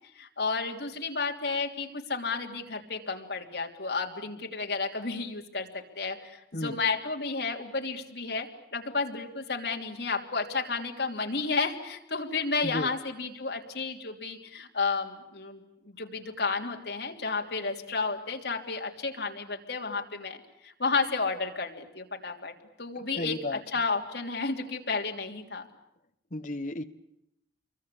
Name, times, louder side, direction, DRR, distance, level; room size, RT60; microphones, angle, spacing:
voice 1, 0.1-20.4 20.6-25.7, left 4 dB, 65° left, 2 dB, 3.2 m, -32 dB
voice 2, 23.2-23.6 26.3-26.8, left 1 dB, 45° left, 9 dB, 1.4 m, -33 dB
27.5 x 23.5 x 8.5 m, 0.80 s
head